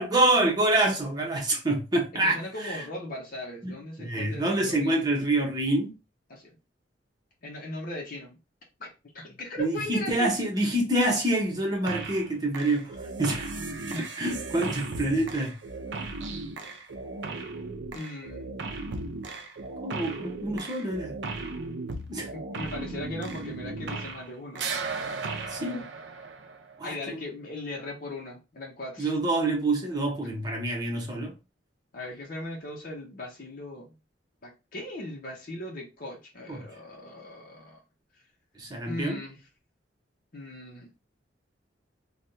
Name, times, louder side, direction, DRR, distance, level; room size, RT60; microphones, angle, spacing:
voice 1, 0.0-2.8 3.6-3.7 4.0-6.0 9.6-12.9 13.2-13.5 13.9-15.5 19.8-21.1 22.1-22.3 25.5-25.8 26.8-27.2 29.0-31.3 36.5-36.6 38.6-39.2, right 1 dB, 20° right, 1.0 m, -26 dB
voice 2, 2.2-5.0 6.3-6.5 7.4-8.3 8.8-10.3 13.8-14.1 17.9-18.6 22.3-24.7 25.6-25.9 26.8-29.1 31.9-33.9 34.4-37.8 38.9-39.4 40.3-40.9, left 1 dB, 50° left, 0.8 m, -38 dB
sound 1, 11.9-12.3 12.5-24.3 24.6-26.8, right 3 dB, 70° right, 0.5 m, -36 dB
3.3 x 2.3 x 2.7 m
head